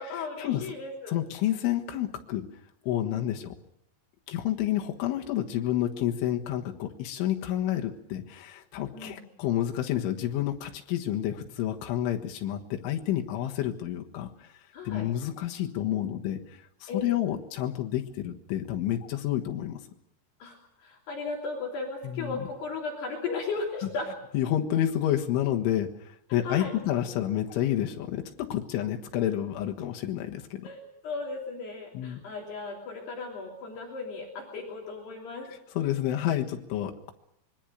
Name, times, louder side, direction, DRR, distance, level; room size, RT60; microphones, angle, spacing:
voice 1, 0.0-1.2 3.1-3.3 8.9-9.2 14.7-15.1 16.9-17.1 20.4-24.1 26.4-26.7 30.6-35.5, left 4 dB, 60° left, 0 dB, 5.0 m, -36 dB
voice 2, 1.1-2.5 2.9-3.6 4.3-14.5 14.9-16.4 16.8-19.8 22.0-22.4 24.3-30.7 32.0-32.2 35.8-37.1, left 12 dB, 85° left, 2 dB, 3.9 m, -29 dB
26.0 x 22.5 x 6.4 m, 0.77 s
omnidirectional pair, 5.5 m